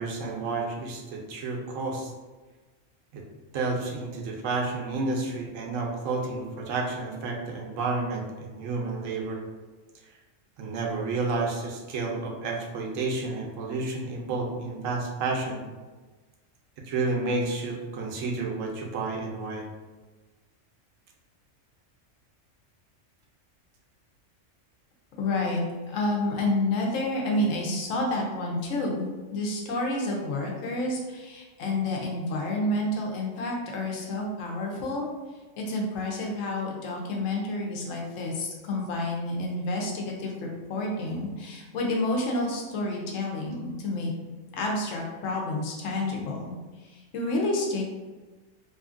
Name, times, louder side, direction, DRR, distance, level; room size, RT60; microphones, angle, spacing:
voice 1, 0.0-2.1 3.1-3.2 3.5-9.4 10.6-15.6 16.8-19.6, right 3 dB, 90° right, 0 dB, 1.0 m, -30 dB
voice 2, 25.2-35.1 35.6-44.1 44.5-46.5 46.8-47.8, left 2 dB, 85° left, -1 dB, 1.0 m, -29 dB
2.7 x 2.5 x 2.4 m, 1.3 s
omnidirectional pair, 1.3 m